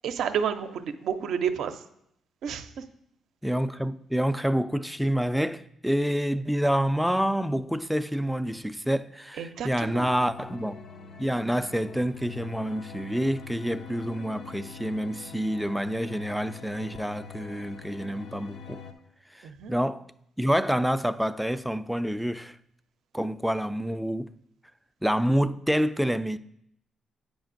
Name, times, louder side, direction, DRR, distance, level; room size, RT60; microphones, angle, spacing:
voice 1, 0.0-1.8 2.4-2.7 9.4-10.1 19.4-19.7, right 7 dB, 70° right, 0.5 m, -30 dB
voice 2, 3.4-10.8 11.2-18.8 19.3-20.0 20.4-22.6 23.1-24.3 25.0-26.4, equal, ahead, 0.4 m, -27 dB
sound 1, 9.7-18.9, left 5 dB, 65° left, 0.6 m, -44 dB
8.7 x 5.2 x 2.5 m
supercardioid pair, 55°, 0 cm